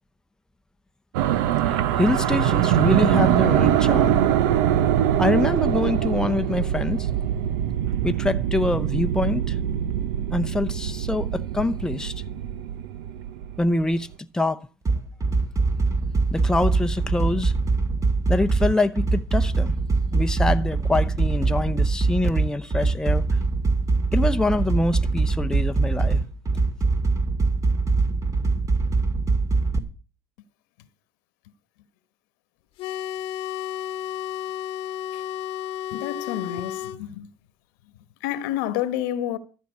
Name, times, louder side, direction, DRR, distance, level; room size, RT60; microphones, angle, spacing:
sound 1, 1.1-13.7, right 11 dB, 90° right, 0.7 m, -23 dB
voice 1, 1.7-4.3 5.2-7.1 8.0-9.6 10.3-12.1 13.6-14.7 16.3-17.5 18.3-19.7 20.1-23.2 24.1-26.2, left 2 dB, 5° left, 0.7 m, -25 dB
sound 2, 14.9-29.8, right 3 dB, 35° right, 2.1 m, -23 dB
sound 3, 32.8-37.0, left 11 dB, 70° left, 1.0 m, -32 dB
voice 2, 35.9-37.3 38.2-39.4, left 12 dB, 90° left, 1.2 m, -29 dB
13.5 x 5.5 x 8.4 m
supercardioid pair, 95°, 10 cm